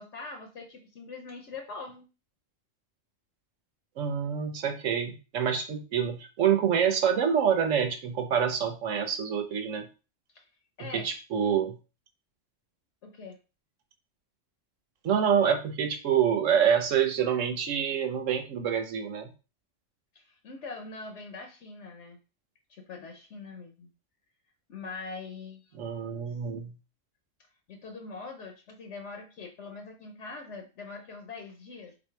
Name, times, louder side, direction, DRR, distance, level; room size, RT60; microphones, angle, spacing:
voice 1, 0.0-2.1 10.3-10.4 10.8-11.1 13.0-13.4 20.1-22.2 22.7-23.9 24.7-26.2 27.7-31.9, left 4 dB, 70° left, 4 dB, 1.0 m, -43 dB
voice 2, 4.0-9.8 10.8-11.8 15.0-19.3 25.7-26.7, right 8 dB, 85° right, 6 dB, 1.2 m, -26 dB
4.0 x 2.7 x 4.5 m, 0.32 s
omnidirectional pair, 1.3 m